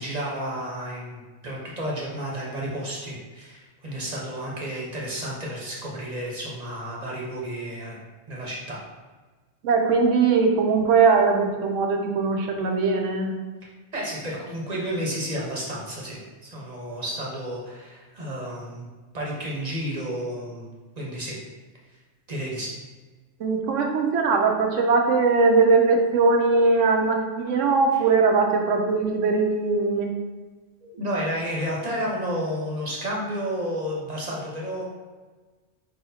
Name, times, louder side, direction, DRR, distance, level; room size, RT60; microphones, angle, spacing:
voice 1, 0.0-8.0 8.3-8.8 13.9-18.9 19.1-20.7 21.0-21.4 22.3-22.7 27.9-28.1 30.8-34.8, equal, 35° right, -4 dB, 1.0 m, -31 dB
voice 2, 9.6-13.3 23.4-30.1, right 4 dB, 85° right, 3 dB, 1.0 m, -20 dB
4.6 x 4.2 x 2.7 m, 1.3 s
omnidirectional pair, 1.2 m